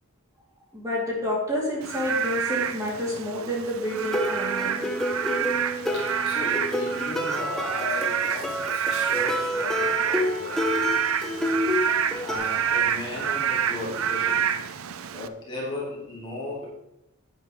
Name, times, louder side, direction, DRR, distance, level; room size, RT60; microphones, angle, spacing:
voice 1, 0.7-4.8, left 1 dB, 15° right, -5 dB, 3.3 m, -29 dB
Frog / Rain, 1.8-15.3, right 8 dB, 70° right, 0.5 m, -28 dB
sound 1, 3.9-12.4, left 1 dB, ahead, 1.1 m, -29 dB
voice 2, 5.9-10.9 12.2-14.5 15.1-16.6, left 2 dB, 20° left, -6 dB, 2.9 m, -36 dB
11.5 x 9.0 x 3.4 m, 0.84 s
head